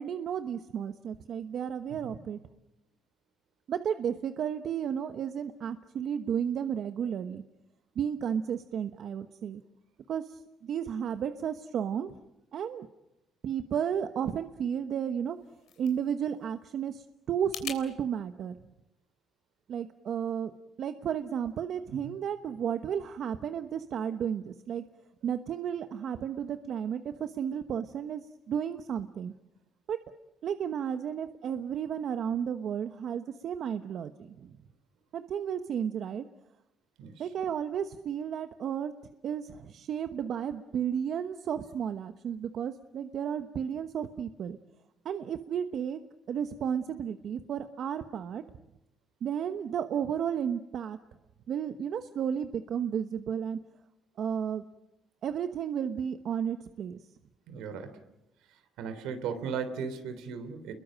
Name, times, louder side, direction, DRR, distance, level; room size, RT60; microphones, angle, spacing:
voice 1, 0.0-2.4 3.7-7.4 8.0-9.6 10.1-12.1 12.5-12.9 13.4-15.4 15.8-18.6 19.7-20.5 20.8-24.8 25.2-29.3 29.9-30.0 30.4-34.5 35.1-36.2 37.2-38.9 39.2-44.6 45.0-46.0 46.3-48.4 49.2-51.0 51.5-53.6 54.2-54.6 55.2-57.0, right 8 dB, 65° right, 9 dB, 1.1 m, -33 dB
sound 1, 15.2-17.8, left 10 dB, 85° left, 3.5 m, -44 dB
voice 2, 57.5-58.0 58.8-60.7, right 6 dB, 90° right, 9 dB, 3.4 m, -36 dB
30.0 x 22.0 x 7.6 m, 0.90 s
cardioid pair, 85°, 0 cm